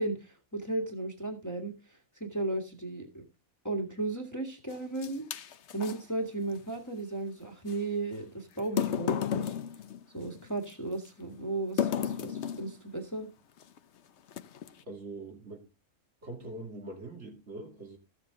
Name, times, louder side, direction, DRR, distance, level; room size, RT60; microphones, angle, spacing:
voice 1, 0.0-3.2 3.6-5.3 5.7-9.5 10.1-13.3, right 2 dB, 10° left, 1.8 m, -35 dB
sound 1, 4.7-6.0 7.7-7.8 8.6-10.7 11.8-12.7 13.6-13.8 14.3-14.8, left 9 dB, 60° left, 1.0 m, -33 dB
voice 2, 14.8-15.6 16.2-18.0, right 2 dB, 50° right, 2.8 m, -43 dB
14.5 x 7.4 x 3.8 m
omnidirectional pair, 1.5 m